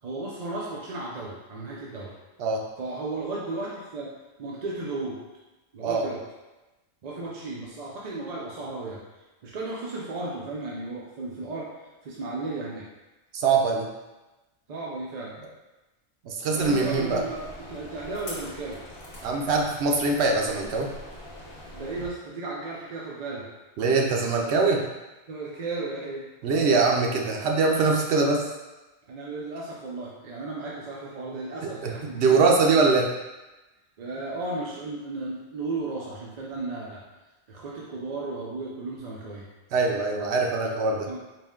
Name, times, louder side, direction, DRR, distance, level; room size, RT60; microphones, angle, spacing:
voice 1, 0.0-2.1 2.8-4.1 4.4-5.2 5.7-6.2 7.0-9.0 9.4-12.9 14.7-15.3 16.5-18.8 21.7-23.5 25.3-26.3 29.1-32.4 32.6-32.7 34.0-37.0 37.5-39.5 40.9-41.2, right 3 dB, 50° right, -4 dB, 0.5 m, -34 dB
voice 2, 13.3-13.9 16.2-17.2 19.2-20.9 23.8-24.9 26.4-28.4 31.8-33.1 39.7-41.1, right 4 dB, 75° right, 1 dB, 0.9 m, -23 dB
sound 1, 16.6-22.1, left 1 dB, 65° left, 1.1 m, -43 dB
4.2 x 2.1 x 3.5 m, 1.1 s
omnidirectional pair, 1.1 m